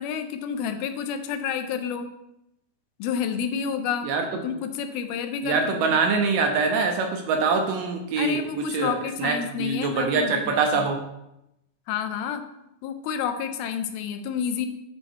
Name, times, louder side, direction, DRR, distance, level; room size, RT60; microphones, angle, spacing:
voice 1, 0.0-2.1 3.0-4.1 4.4-6.0 8.2-10.9 11.9-12.4 12.8-14.7, left 7 dB, 80° left, 8 dB, 2.4 m, -29 dB
voice 2, 4.0-4.4 5.4-8.4 8.7-8.9 9.2-11.0, right 4 dB, 75° right, 4 dB, 2.1 m, -24 dB
8.9 x 4.3 x 4.6 m, 0.86 s
omnidirectional pair, 4.5 m